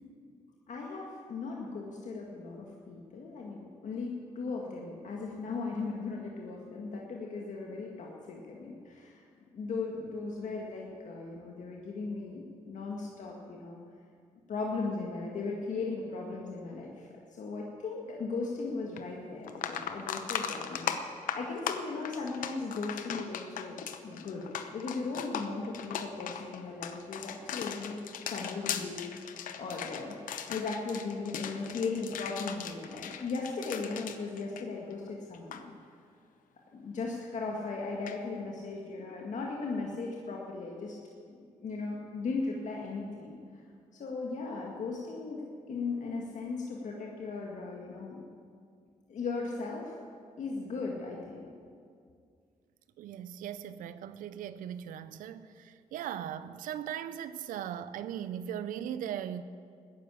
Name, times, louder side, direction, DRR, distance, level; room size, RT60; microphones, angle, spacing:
voice 1, 0.7-9.2 9.5-13.8 14.5-23.8 24.0-24.4 24.7-35.7 36.7-41.0 41.3-43.4 44.0-45.4 45.7-48.2 49.1-50.0 50.4-51.5, left 4 dB, 65° left, 1.9 m, -37 dB
sound 1, 19.0-19.1 19.4-35.1 35.3-35.6 38.1-38.2, left 8 dB, 85° left, 0.9 m, -38 dB
voice 2, 53.0-59.4, right 10 dB, 90° right, 0.6 m, -39 dB
14.5 x 10.0 x 8.3 m
cardioid pair, 65°, 14 cm